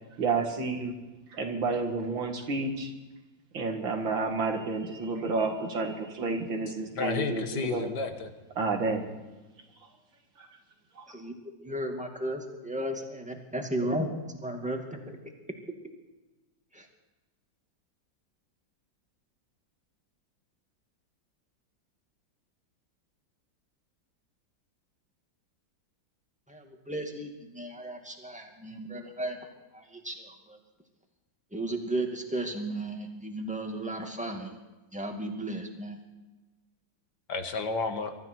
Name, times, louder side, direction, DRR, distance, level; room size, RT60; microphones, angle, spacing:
voice 1, 0.2-0.9 1.3-2.9 3.5-7.9 8.6-9.0 10.4-10.5 11.0-11.1, right 3 dB, 90° right, 3 dB, 2.8 m, -30 dB
voice 2, 6.9-8.3 37.3-38.2, left 4 dB, 65° left, 7 dB, 1.9 m, -31 dB
voice 3, 11.6-15.2 16.7-16.9 26.5-29.4 29.7-30.6 31.5-34.6 34.9-36.0, right 1 dB, 5° right, 2 dB, 2.0 m, -35 dB
23.5 x 13.5 x 4.6 m, 1.2 s
omnidirectional pair, 2.0 m